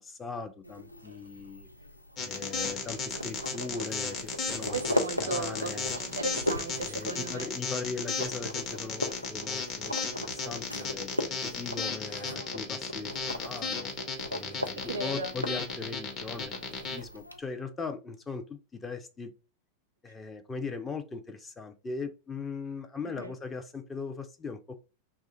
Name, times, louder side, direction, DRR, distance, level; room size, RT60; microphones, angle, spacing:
voice 1, 0.0-1.7 2.2-4.8 5.2-6.0 6.8-13.9 14.3-19.3 20.0-24.8, left 4 dB, 15° left, 0.5 m, -39 dB
sound 1, 0.6-17.4, left 1 dB, 90° left, 0.4 m, -38 dB
sound 2, 2.2-17.0, left 4 dB, 30° left, 0.8 m, -34 dB
voice 2, 4.7-7.5 12.4-12.5 14.8-15.3 23.0-23.4, right 3 dB, 75° right, 0.5 m, -36 dB
2.9 x 2.4 x 4.0 m
figure-of-eight pair, 90°, 0 cm